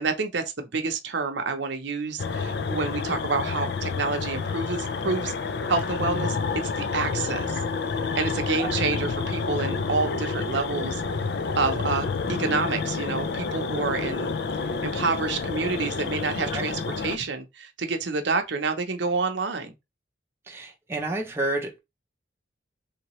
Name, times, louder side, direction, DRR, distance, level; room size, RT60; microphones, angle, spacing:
voice 1, 0.0-5.3 5.7-6.4 6.8-7.6 8.2-11.0 11.6-14.3 14.8-19.7, right 4 dB, 70° right, 0.7 m, -28 dB
sound 1, 2.2-17.2, left 4 dB, 55° left, 0.4 m, -29 dB
voice 2, 20.5-21.8, right 2 dB, 15° right, 0.5 m, -30 dB
3.2 x 2.8 x 3.0 m
head